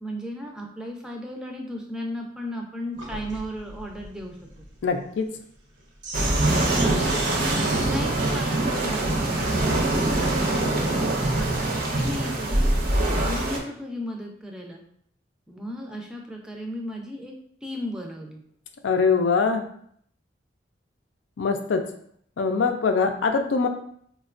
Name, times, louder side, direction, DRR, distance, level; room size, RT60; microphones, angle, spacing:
voice 1, 0.0-4.4 6.7-12.7 13.1-14.8 15.5-17.3 17.6-18.4, equal, 5° right, 0 dB, 0.4 m, -35 dB
Sink (filling or washing), 3.0-11.0, right 2 dB, 85° right, 0.8 m, -36 dB
voice 2, 4.8-5.3 18.8-19.7 21.4-21.8 22.4-23.7, left 5 dB, 85° left, 6 dB, 0.4 m, -22 dB
sound 1, 6.1-13.6, right 2 dB, 50° right, 0.5 m, -24 dB
4.2 x 2.2 x 2.4 m, 0.64 s
head